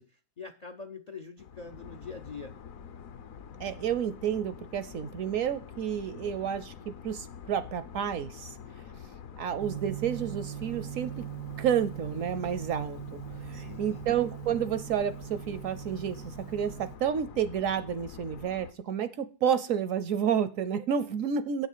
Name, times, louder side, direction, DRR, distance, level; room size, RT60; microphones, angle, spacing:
voice 1, 0.0-2.6 8.6-9.0 13.5-14.1, left 5 dB, 85° left, 8 dB, 0.3 m, -45 dB
sound 1, 1.4-18.7, left 7 dB, 65° left, 1.0 m, -46 dB
voice 2, 3.6-8.5 9.4-11.2 11.6-21.7, right 8 dB, 65° right, 13 dB, 0.8 m, -30 dB
Gong, 9.6-17.0, right 14 dB, 90° right, 1.8 m, -41 dB
7.8 x 6.4 x 6.7 m, 0.38 s
omnidirectional pair, 1.8 m